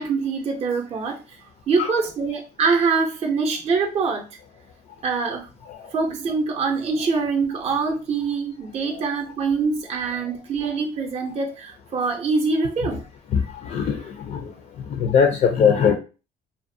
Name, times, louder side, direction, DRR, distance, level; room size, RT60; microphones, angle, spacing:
voice 1, 0.0-1.4 1.7-4.3 5.0-5.5 5.9-13.0, right 4 dB, 40° right, 2 dB, 0.5 m, -24 dB
voice 2, 13.3-14.5 14.9-15.9, left 7 dB, 50° left, 4 dB, 0.4 m, -21 dB
2.5 x 2.0 x 2.5 m, 0.33 s
cardioid pair, 110°, 17 cm